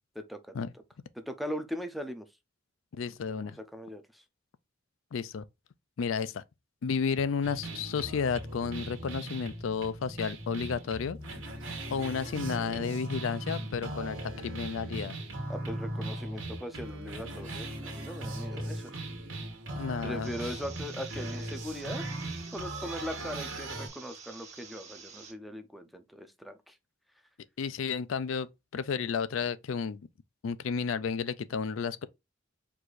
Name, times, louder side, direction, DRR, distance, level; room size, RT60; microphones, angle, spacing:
voice 1, 0.2-0.5 1.3-2.3 3.3-4.2 15.5-19.0 20.0-22.0 22.5-26.7, equal, ahead, 0.5 m, -40 dB
voice 2, 3.0-3.6 5.1-5.4 6.0-6.4 6.8-11.2 11.9-15.2 19.8-20.3 27.6-30.0 30.4-32.1, left 6 dB, 80° left, 0.4 m, -32 dB
sound 1, 7.4-23.9, right 1 dB, 75° right, 1.4 m, -38 dB
sound 2, 20.2-25.3, right 5 dB, 35° right, 1.4 m, -49 dB
4.8 x 2.6 x 3.9 m
head